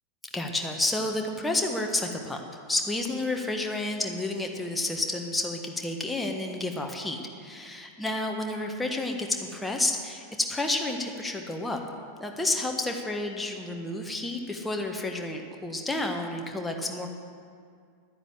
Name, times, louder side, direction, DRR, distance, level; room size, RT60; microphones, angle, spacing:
voice 1, 0.3-2.4 2.7-11.8 12.2-17.1, left 2 dB, 10° left, 2 dB, 1.4 m, -30 dB
11.0 x 9.8 x 8.1 m, 2.2 s
figure-of-eight pair, 90°, 0 cm